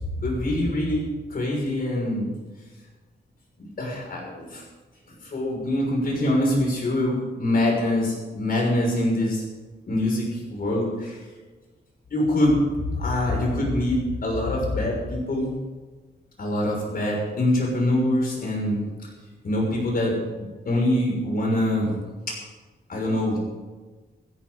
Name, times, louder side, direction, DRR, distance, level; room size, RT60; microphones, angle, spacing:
voice 1, 0.1-2.3 3.6-4.6 5.2-9.4 9.9-11.2 12.1-12.6 12.9-15.5 16.4-18.8 19.4-20.1 20.4-21.9 22.3-22.4 22.9-23.4, left 1 dB, 55° left, -2 dB, 6.2 m, -24 dB
16.0 x 16.0 x 4.1 m, 1.3 s
wide cardioid pair, 150°, 19 cm